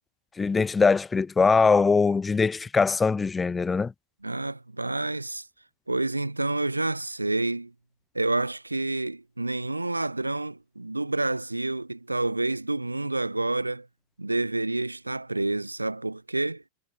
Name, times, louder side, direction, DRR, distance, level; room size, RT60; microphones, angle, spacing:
voice 1, 0.4-3.9, left 4 dB, 15° left, 0.7 m, -22 dB
voice 2, 4.2-5.5 5.9-7.7 8.1-13.9 14.2-16.6, right 2 dB, 85° right, 4.9 m, -28 dB
figure-of-eight pair, 90°, 0 cm